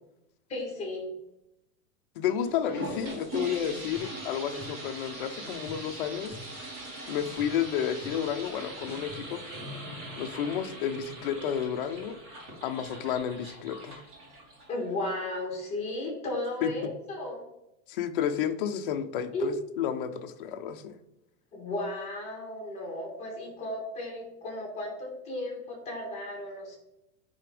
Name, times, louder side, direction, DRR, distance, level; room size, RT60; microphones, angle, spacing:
voice 1, 0.5-1.1 14.7-17.4 19.3-19.5 21.5-26.8, left 2 dB, 15° left, 0 dB, 1.4 m, -34 dB
voice 2, 2.2-6.4 7.1-9.4 10.2-12.2 12.6-14.0 16.6-16.9 17.9-21.0, left 9 dB, 40° left, 7 dB, 0.5 m, -31 dB
sound 1, 2.4-14.9, right 1 dB, 35° right, 2.1 m, -41 dB
sound 2, 2.9-4.2 4.6-5.2 5.4-5.9 6.3-10.3, left 1 dB, 15° right, 2.3 m, -49 dB
9.4 x 3.4 x 3.4 m, 0.86 s
supercardioid pair, 160°, 42 cm